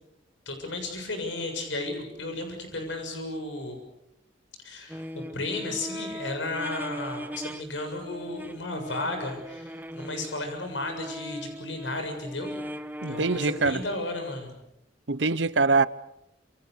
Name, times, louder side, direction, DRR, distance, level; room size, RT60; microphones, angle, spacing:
voice 1, 0.5-3.8 4.6-12.5 13.1-14.6, left 2 dB, 80° left, 7.2 m, -34 dB
sound 1, 4.9-7.7 7.9-14.0, equal, 10° right, 1.2 m, -39 dB
voice 2, 13.0-13.8 15.1-15.9, right 3 dB, 70° right, 1.0 m, -23 dB
28.0 x 27.5 x 6.9 m
head